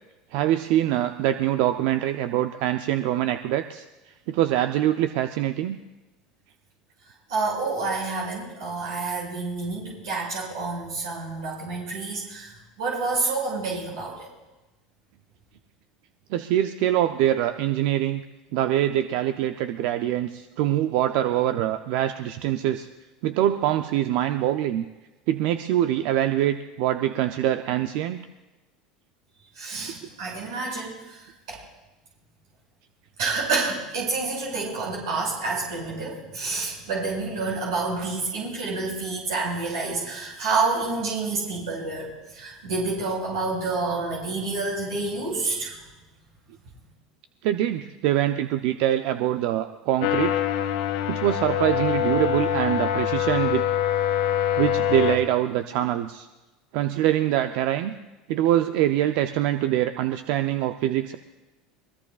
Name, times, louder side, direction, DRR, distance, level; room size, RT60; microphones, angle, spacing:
voice 1, 0.3-3.8 4.3-5.8 16.3-18.2 18.5-22.9 23.2-24.8 25.3-28.2 47.4-50.4 51.1-53.6 54.6-56.3 56.7-57.9 58.3-61.2, right 12 dB, 65° right, 9 dB, 0.5 m, -24 dB
voice 2, 7.3-12.5 12.8-14.3 29.6-30.9 31.5-31.6 33.2-45.7, right 3 dB, 80° right, -4 dB, 6.0 m, -28 dB
sound 1, 50.0-55.2, left 10 dB, 80° left, 1.7 m, -24 dB
22.0 x 20.0 x 2.4 m, 1.1 s
hypercardioid pair, 90°, 2 cm